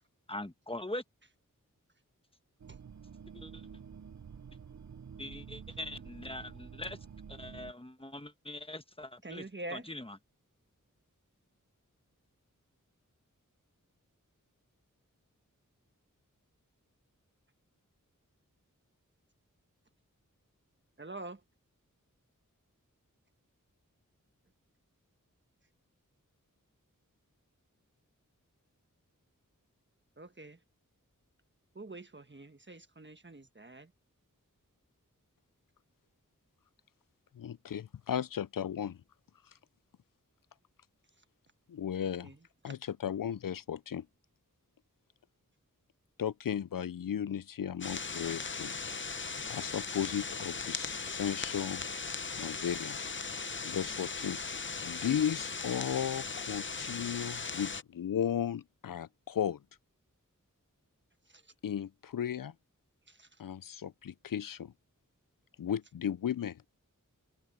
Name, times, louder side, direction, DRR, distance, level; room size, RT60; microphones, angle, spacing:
voice 1, 0.3-1.0 3.3-3.7 5.2-7.0 7.3-9.4 9.7-10.0, left 1 dB, 15° left, 1.4 m, -42 dB
sound 1, 2.6-7.7, right 7 dB, 60° right, 0.6 m, -49 dB
voice 2, 9.2-9.9 21.0-21.4 30.2-30.6 31.7-33.9 41.2-41.3 42.0-42.8 51.0-51.1 61.2-61.5 63.1-63.4, right 2 dB, 35° right, 1.4 m, -46 dB
voice 3, 37.4-39.0 41.7-42.3 42.6-44.1 46.2-48.8 49.5-51.8 52.4-53.0 53.6-54.4 54.8-59.6 61.6-62.5 63.4-64.7 65.6-66.7, left 9 dB, 80° left, 0.5 m, -35 dB
sound 2, 47.8-57.8, left 4 dB, 35° left, 0.7 m, -38 dB
open air
wide cardioid pair, 55°, 33 cm